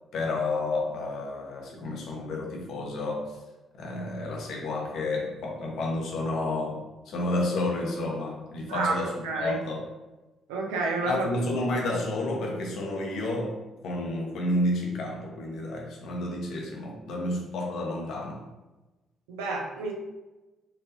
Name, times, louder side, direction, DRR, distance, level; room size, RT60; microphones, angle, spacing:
voice 1, 0.1-3.4 3.8-9.9 11.0-18.4, left 2 dB, 60° left, 0 dB, 0.8 m, -30 dB
voice 2, 8.7-9.6 10.5-11.3 19.3-19.9, right 3 dB, 75° right, 0 dB, 0.5 m, -30 dB
4.0 x 2.6 x 2.8 m, 1.1 s
figure-of-eight pair, 45°, 0 cm